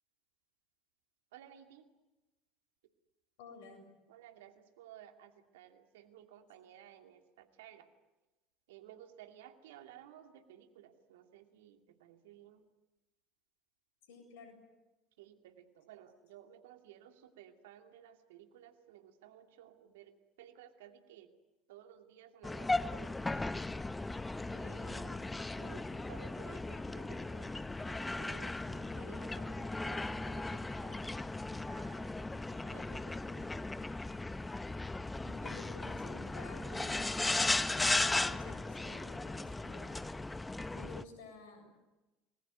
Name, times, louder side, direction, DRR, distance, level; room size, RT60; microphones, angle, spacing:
voice 1, 1.3-1.9 4.1-7.9 8.7-12.7 15.2-21.3 21.7-23.6 24.5-25.3 25.6-27.5 27.9-31.3 31.6-33.7 41.0-41.1, right 11 dB, 75° right, 6 dB, 2.5 m, -56 dB
voice 2, 3.4-3.8 14.1-14.6 35.2-37.3 37.7-40.1 40.7-41.7, left 4 dB, 70° left, 7 dB, 7.4 m, -52 dB
sound 1, 22.4-41.0, left 2 dB, 15° left, 1.0 m, -37 dB
30.0 x 21.0 x 9.4 m, 1.1 s
hypercardioid pair, 70°, 0 cm